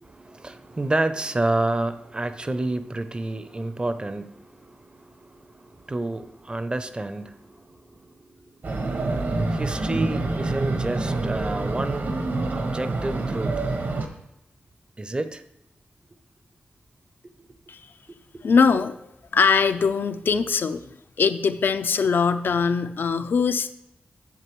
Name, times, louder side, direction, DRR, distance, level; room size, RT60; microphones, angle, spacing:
voice 1, 0.0-12.2 12.5-13.5 15.0-15.4 18.1-18.4, right 2 dB, 25° right, 11 dB, 0.5 m, -30 dB
sound 1, 8.6-14.1, right 2 dB, 65° right, 1.1 m, -27 dB
voice 2, 18.4-19.0 19.3-20.9 21.2-23.7, left 5 dB, 70° left, 11 dB, 0.5 m, -21 dB
11.0 x 7.4 x 3.1 m, 0.82 s
cardioid pair, 75°, 4 cm